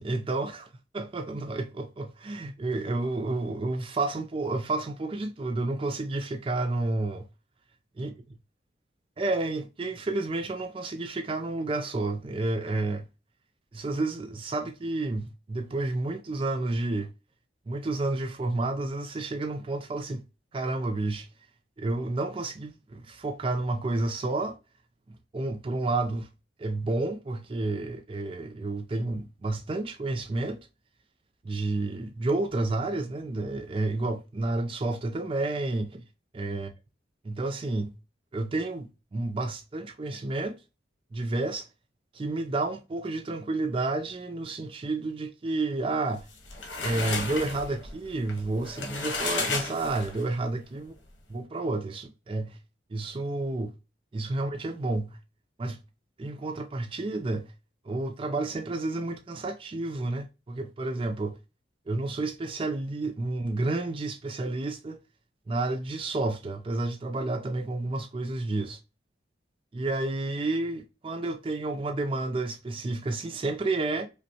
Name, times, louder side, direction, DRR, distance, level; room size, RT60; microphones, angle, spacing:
voice 1, 0.0-7.3 8.0-8.1 9.2-13.1 13.7-17.1 17.7-20.2 20.5-21.3 21.8-24.6 25.1-26.3 26.6-30.6 31.4-36.0 36.3-36.7 37.2-38.0 38.3-40.6 41.1-41.7 42.1-46.3 46.8-50.9 51.3-52.6 52.9-53.7 54.1-55.2 55.6-55.8 56.2-57.5 57.8-61.4 61.9-65.0 65.5-68.8 69.7-74.1, right 2 dB, 30° right, 0.4 m, -30 dB
sound 1, 46.2-50.4, left 3 dB, 80° left, 1.1 m, -33 dB
5.2 x 2.2 x 2.7 m
head